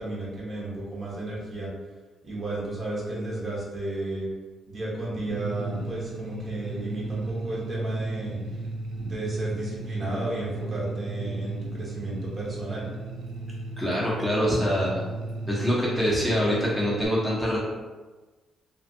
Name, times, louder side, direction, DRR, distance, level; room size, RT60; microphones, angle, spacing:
voice 1, 0.0-1.7 2.2-4.3 4.7-8.4 8.9-12.9, right 1 dB, 35° right, -6 dB, 0.9 m, -33 dB
sound 1, 5.3-17.1, right 2 dB, 70° right, 0.3 m, -35 dB
voice 2, 13.8-15.0 15.5-17.6, equal, 5° left, -7 dB, 0.7 m, -25 dB
2.5 x 2.4 x 2.6 m, 1.3 s
cardioid pair, 90°, 0 cm